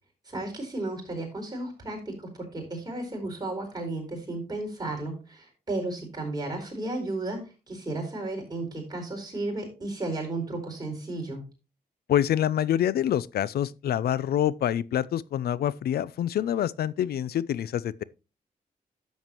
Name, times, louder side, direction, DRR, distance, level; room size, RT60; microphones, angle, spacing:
voice 1, 0.2-11.4, right 2 dB, 25° right, 4.7 m, -34 dB
voice 2, 12.1-18.0, left 10 dB, 75° left, 0.5 m, -26 dB
11.0 x 7.3 x 3.0 m
cardioid pair, 90°, 16 cm